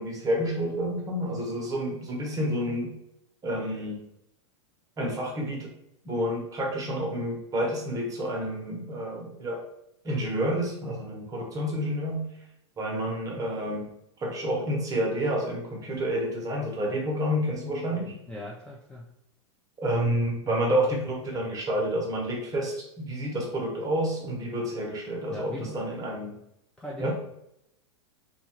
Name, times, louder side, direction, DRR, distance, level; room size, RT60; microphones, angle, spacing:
voice 1, 0.0-2.9 3.4-4.0 5.0-5.7 6.0-9.6 10.0-12.2 12.8-13.9 14.2-18.2 19.8-26.3 27.0-27.1, equal, 20° right, -1 dB, 0.9 m, -29 dB
voice 2, 18.3-19.1 25.3-25.8 26.8-27.1, left 1 dB, 5° left, -3 dB, 0.4 m, -39 dB
2.7 x 2.3 x 2.8 m, 0.81 s
hypercardioid pair, 110°, 15 cm